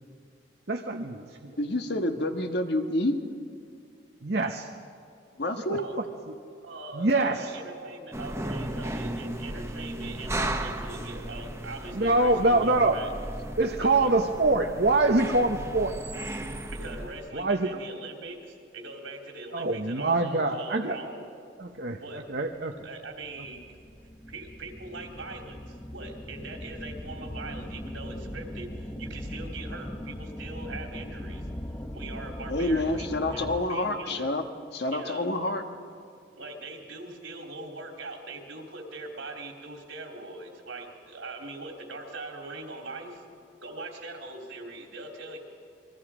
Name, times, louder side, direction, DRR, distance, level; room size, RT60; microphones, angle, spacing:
voice 1, 0.7-1.6 4.2-4.7 5.7-5.8 6.3-6.4 6.9-7.5 11.9-13.0 13.6-16.0 17.3-17.8 19.5-21.0 21.6-22.0 22.3-22.9, right 2 dB, 55° right, 3 dB, 1.0 m, -25 dB
voice 2, 1.6-3.2 5.4-5.8 32.5-34.4 34.7-35.6, left 1 dB, 55° left, 6 dB, 1.5 m, -28 dB
voice 3, 6.6-13.1 14.0-14.1 16.7-21.2 22.0-22.2 22.8-23.6 24.3-31.4 31.9-34.3 34.9-35.3 36.4-43.2 43.6-45.4, right 2 dB, 80° right, 2 dB, 3.4 m, -41 dB
sound 1, 8.1-17.3, right 1 dB, 15° right, 1.1 m, -35 dB
sound 2, 23.2-33.9, left 1 dB, 15° left, 1.0 m, -39 dB
29.0 x 22.5 x 5.0 m, 2.4 s
head